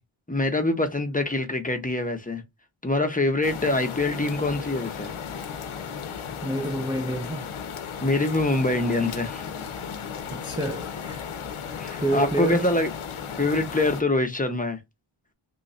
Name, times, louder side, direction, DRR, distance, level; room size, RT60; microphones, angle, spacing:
voice 1, 0.3-2.4 2.8-5.1 8.0-9.4 11.8-12.9 13.4-14.8, left 2 dB, 15° left, 0.7 m, -24 dB
sound 1, 3.4-14.0, left 7 dB, 85° left, 0.6 m, -35 dB
voice 2, 6.4-7.5 10.3-11.3 11.6-12.7, right 1 dB, 10° right, 0.4 m, -29 dB
3.2 x 2.2 x 3.9 m
wide cardioid pair, 70°, 49 cm